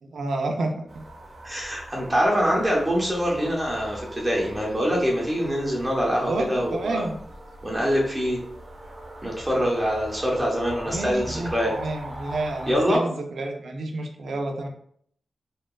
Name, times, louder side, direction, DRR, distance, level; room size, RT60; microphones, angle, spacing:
voice 1, 0.0-1.0 6.2-7.2 10.8-14.7, right 2 dB, 80° right, 3 dB, 0.4 m, -30 dB
sound 1, 0.9-13.0, right 1 dB, 55° right, 0.8 m, -41 dB
voice 2, 1.4-7.0 7.6-8.4 9.2-11.7 12.7-13.0, equal, 20° right, -3 dB, 0.7 m, -24 dB
2.8 x 2.3 x 2.2 m, 0.64 s
wide cardioid pair, 90°, 0 cm